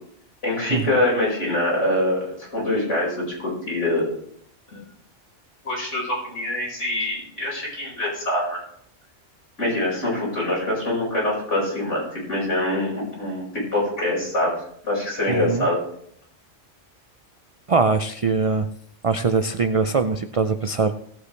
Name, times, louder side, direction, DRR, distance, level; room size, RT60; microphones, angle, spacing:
voice 1, 0.4-4.1 4.7-4.8 5.6-8.6 9.6-14.5 14.8-15.8, left 1 dB, 75° left, -4 dB, 5.4 m, -24 dB
voice 2, 15.3-15.7 17.7-18.7 19.0-20.9, right 4 dB, 65° right, 9 dB, 0.3 m, -22 dB
18.0 x 8.2 x 3.2 m, 0.67 s
omnidirectional pair, 1.3 m